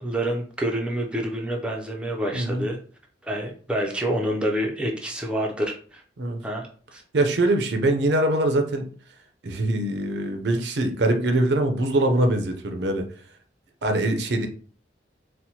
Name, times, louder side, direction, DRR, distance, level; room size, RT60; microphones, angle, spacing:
voice 1, 0.0-2.8 3.2-6.0 6.4-6.7 6.9-7.0, right 1 dB, 5° right, 0 dB, 0.4 m, -27 dB
voice 2, 2.3-2.6 6.2-6.4 7.1-8.9 9.4-13.1 13.8-14.5, right 1 dB, 65° right, 5 dB, 0.6 m, -23 dB
4.3 x 2.1 x 2.7 m, 0.42 s
head